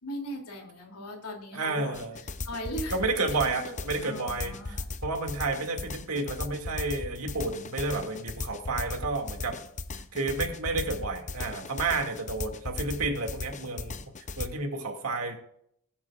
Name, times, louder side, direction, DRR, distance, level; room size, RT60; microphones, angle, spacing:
voice 1, 0.0-2.0 2.4-3.0 3.6-3.8 4.0-4.9, equal, 90° left, 1 dB, 3.0 m, -38 dB
voice 2, 1.5-2.2 2.9-9.6 10.1-14.0 14.4-15.3, right 3 dB, 75° right, 3 dB, 2.4 m, -31 dB
sound 1, 1.9-14.5, left 3 dB, 35° left, 0.7 m, -37 dB
19.0 x 9.5 x 2.5 m, 0.70 s
head